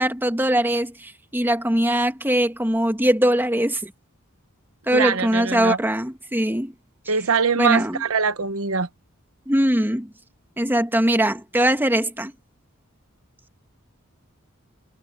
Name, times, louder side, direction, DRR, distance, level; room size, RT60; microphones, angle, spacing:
voice 1, 0.0-3.9 4.9-6.7 7.6-8.0 9.5-10.1 10.6-12.3, right 1 dB, 10° right, 2.4 m, -21 dB
voice 2, 4.9-5.8 7.1-8.9, right 5 dB, 75° right, 1.0 m, -22 dB
head